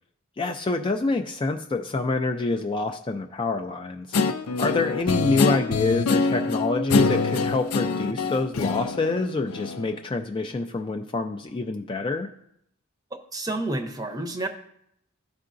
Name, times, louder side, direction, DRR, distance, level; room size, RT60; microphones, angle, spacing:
voice 1, 0.4-4.2 4.6-12.3, left 3 dB, 25° left, 4 dB, 0.3 m, -26 dB
Guitar, 4.1-9.9, left 4 dB, 80° left, 0.5 m, -25 dB
voice 2, 13.1-14.5, right 2 dB, 15° right, 6 dB, 0.6 m, -30 dB
13.5 x 4.6 x 2.5 m, 0.74 s
head